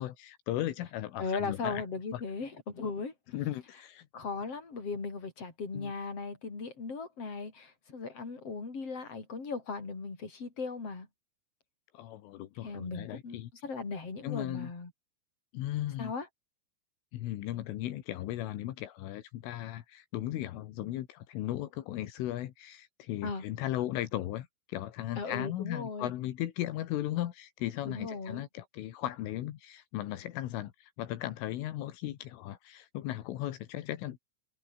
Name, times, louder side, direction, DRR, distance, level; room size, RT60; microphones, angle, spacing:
voice 1, 0.0-1.8 2.1-2.2 3.3-4.1 5.7-5.9 11.9-13.5 14.2-14.7 15.5-16.1 17.1-34.2, left 14 dB, 80° left, 4.1 m, -36 dB
voice 2, 1.2-3.1 4.1-11.1 12.6-14.9 16.0-16.3 23.2-23.4 25.2-26.1 27.8-28.4, left 4 dB, 30° left, 6.3 m, -37 dB
omnidirectional pair, 5.7 m